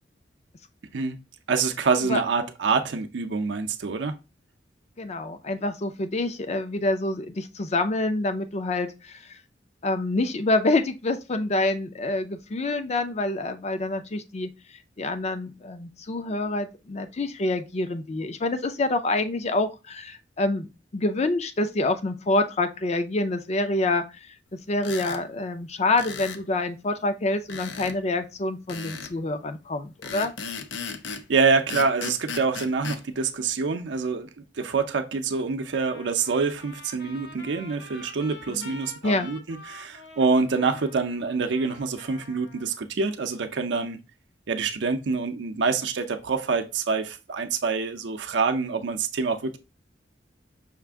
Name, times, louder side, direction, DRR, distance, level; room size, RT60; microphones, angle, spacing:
voice 1, 1.5-4.2 31.3-44.0 44.5-49.6, right 4 dB, 75° right, 0.5 m, -26 dB
voice 2, 5.0-9.2 9.8-14.5 15.0-24.0 24.7-30.3 38.5-38.7 39.0-39.3, left 2 dB, 40° left, 0.5 m, -27 dB
sound 1, 24.8-25.2 26.0-26.4 27.5-28.0 28.7-29.2 30.0-31.3 31.7-33.0, left 5 dB, 90° left, 0.6 m, -36 dB
Trumpet, 35.8-42.8, left 2 dB, 70° left, 1.0 m, -46 dB
5.8 x 2.5 x 3.4 m
head